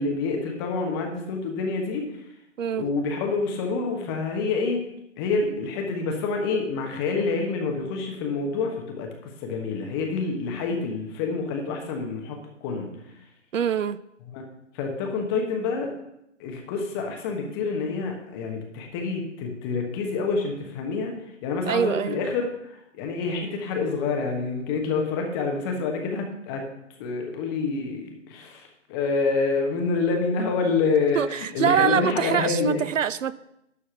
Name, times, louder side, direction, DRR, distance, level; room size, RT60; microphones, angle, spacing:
voice 1, 0.0-2.1 2.7-4.8 5.2-12.9 14.3-14.4 14.7-15.9 16.4-21.1 21.4-26.6 27.0-32.8, left 4 dB, 20° left, 2 dB, 1.2 m, -27 dB
voice 2, 13.5-14.0 21.7-22.2 31.1-33.3, right 8 dB, 85° right, 17 dB, 0.6 m, -24 dB
11.5 x 4.2 x 6.8 m, 0.82 s
hypercardioid pair, 150°, 37 cm